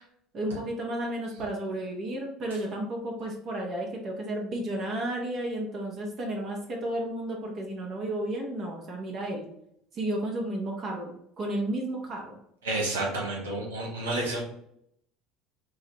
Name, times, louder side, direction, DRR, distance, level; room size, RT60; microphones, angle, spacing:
voice 1, 0.3-9.5 9.9-12.4, right 1 dB, 50° right, 0 dB, 1.0 m, -32 dB
voice 2, 12.6-14.4, right 2 dB, 90° right, -2 dB, 1.2 m, -30 dB
4.6 x 2.2 x 2.9 m, 0.72 s
hypercardioid pair, 80°, 0 cm